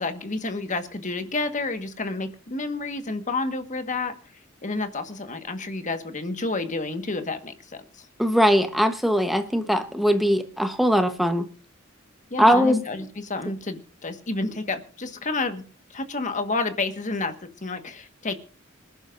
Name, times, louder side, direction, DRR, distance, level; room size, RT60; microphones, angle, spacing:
voice 1, 0.0-4.1 4.6-8.1 12.3-15.6 15.9-18.3, left 3 dB, 40° left, 8 dB, 1.5 m, -30 dB
voice 2, 8.2-11.4 12.4-12.8, equal, ahead, 6 dB, 1.0 m, -20 dB
26.5 x 11.5 x 2.6 m, 0.38 s
head